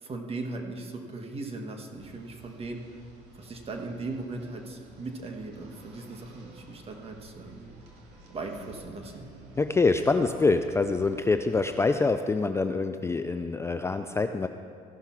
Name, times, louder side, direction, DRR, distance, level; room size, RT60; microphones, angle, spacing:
voice 1, 0.0-3.0 3.4-7.7 8.3-9.3, right 3 dB, 35° right, 3 dB, 1.4 m, -38 dB
sound 1, 1.9-11.7, right 4 dB, 85° right, 2.1 m, -52 dB
voice 2, 9.6-14.5, left 3 dB, 15° left, 8 dB, 0.3 m, -25 dB
15.0 x 5.8 x 5.8 m, 2.5 s
cardioid pair, 110°, 17 cm